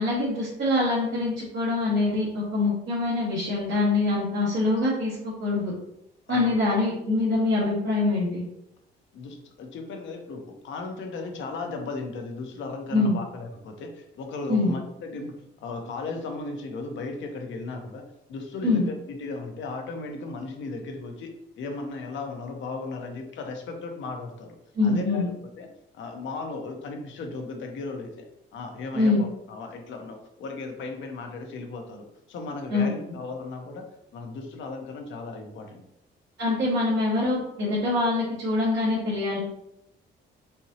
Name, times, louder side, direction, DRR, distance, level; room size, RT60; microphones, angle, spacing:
voice 1, 0.0-5.7 6.3-8.4 12.9-13.2 14.5-14.7 18.6-18.9 24.7-25.3 28.9-29.2 32.7-32.9 36.4-39.4, left 2 dB, 65° right, -7 dB, 1.5 m, -24 dB
voice 2, 9.1-15.3 15.6-21.3 21.6-24.5 24.8-25.2 25.6-28.2 28.5-33.9 34.1-35.8, left 3 dB, 70° left, 3 dB, 0.8 m, -36 dB
4.4 x 2.8 x 2.8 m, 0.79 s
cardioid pair, 90°, 20 cm